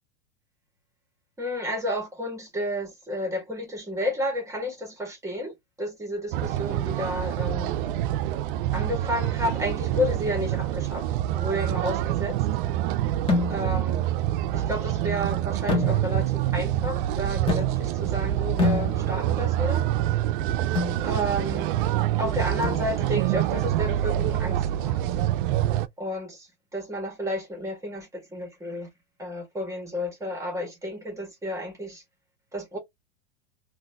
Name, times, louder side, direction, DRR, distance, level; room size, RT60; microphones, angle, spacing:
voice 1, 1.4-7.7 8.7-11.1 11.3-12.4 13.5-14.1 14.5-19.9 21.0-21.7 22.2-25.0 26.0-28.9 29.2-32.0 32.5-32.8, left 1 dB, 10° right, 1.6 m, -31 dB
sound 1, 6.3-25.9, right 13 dB, 50° right, 0.4 m, -26 dB
sound 2, 13.3-13.9 15.7-16.4 17.5-18.1 18.6-19.4 20.7-21.1 22.6-23.2, left 3 dB, 15° left, 1.2 m, -28 dB
3.8 x 2.6 x 2.3 m
hypercardioid pair, 110°, 33 cm